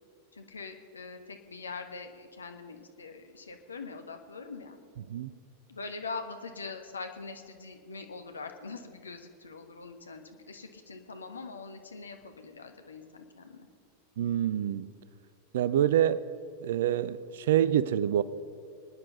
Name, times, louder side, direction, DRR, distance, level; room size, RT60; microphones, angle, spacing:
voice 1, 0.3-4.8 5.7-13.7, left 4 dB, 75° left, 6 dB, 1.4 m, -43 dB
voice 2, 14.2-14.9 15.5-16.2 16.6-18.2, right 10 dB, 55° right, 18 dB, 0.6 m, -26 dB
25.0 x 9.8 x 5.5 m, 2.3 s
figure-of-eight pair, 90°, 0 cm